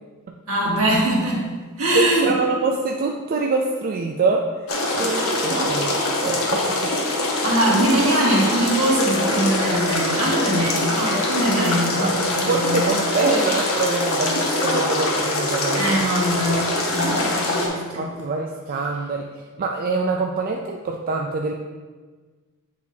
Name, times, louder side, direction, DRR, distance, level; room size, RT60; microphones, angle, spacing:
voice 1, 0.5-1.4 1.8-2.3 5.0-5.1 7.4-12.9 15.7-18.1, right 1 dB, 70° right, -4 dB, 1.7 m, -22 dB
voice 2, 1.9-6.9 11.9-12.1 12.5-16.0 17.9-21.5, right 3 dB, 40° right, 1 dB, 0.4 m, -25 dB
sound 1, 4.7-17.7, left 2 dB, 70° left, 1.2 m, -23 dB
8.0 x 4.9 x 2.7 m, 1.4 s
head